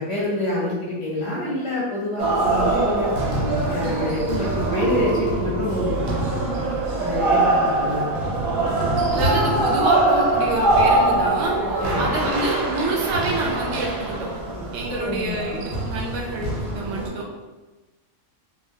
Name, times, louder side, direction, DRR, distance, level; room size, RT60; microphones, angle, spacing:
voice 1, 0.0-3.1 3.7-6.0 7.0-8.2 11.8-12.2 14.9-15.5, left 1 dB, 35° left, -7 dB, 0.6 m, -27 dB
sound 1, 2.2-17.1, right 2 dB, 90° right, 1.1 m, -23 dB
voice 2, 9.1-11.5 12.0-14.3 14.7-17.2, right 2 dB, 70° right, -1 dB, 0.8 m, -27 dB
2.3 x 2.1 x 2.6 m, 1.2 s
omnidirectional pair, 1.5 m